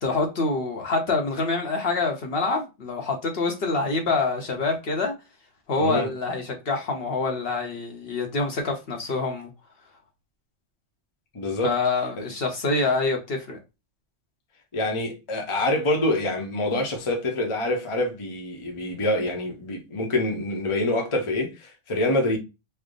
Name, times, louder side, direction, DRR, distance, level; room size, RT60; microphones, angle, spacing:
voice 1, 0.0-5.1 5.7-9.5 11.6-13.6, left 3 dB, 60° left, 0.9 m, -26 dB
voice 2, 11.3-11.8 12.2-12.3 14.7-22.4, left 1 dB, 30° left, 0.7 m, -26 dB
3.3 x 2.0 x 3.6 m
omnidirectional pair, 1.2 m